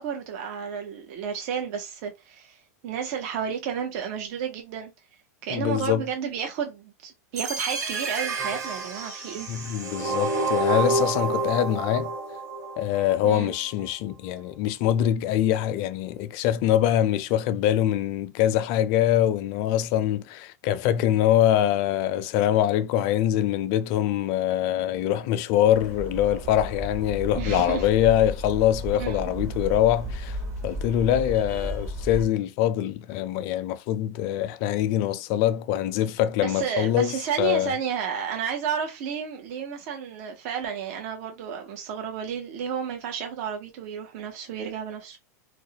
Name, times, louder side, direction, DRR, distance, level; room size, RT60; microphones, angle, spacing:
voice 1, 0.0-2.6 2.8-4.9 5.4-9.5 13.2-13.5 27.3-27.9 29.0-29.3 36.4-45.2, right 7 dB, 60° right, 0.7 m, -32 dB
voice 2, 5.5-6.1 9.5-12.1 12.8-30.4 30.6-37.7, left 11 dB, 50° left, 0.4 m, -24 dB
sound 1, 7.4-13.4, right 3 dB, 85° right, 1.4 m, -29 dB
sound 2, 25.7-32.3, equal, 30° right, 1.3 m, -34 dB
2.3 x 2.0 x 2.8 m
hypercardioid pair, 115°, 9 cm